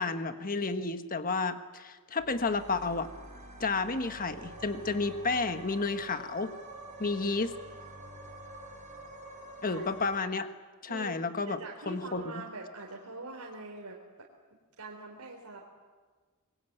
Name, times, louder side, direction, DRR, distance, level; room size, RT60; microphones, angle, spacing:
voice 1, 0.0-3.1 3.6-6.5 7.0-7.5 9.6-10.5 10.8-11.6 11.9-12.2, left 3 dB, 40° left, 9 dB, 1.4 m, -31 dB
sound 1, 2.2-10.2, right 1 dB, 35° right, 5.0 m, -47 dB
voice 2, 11.5-14.3 14.8-15.7, right 2 dB, 85° right, -1 dB, 3.8 m, -43 dB
25.5 x 22.0 x 9.3 m, 1.4 s
head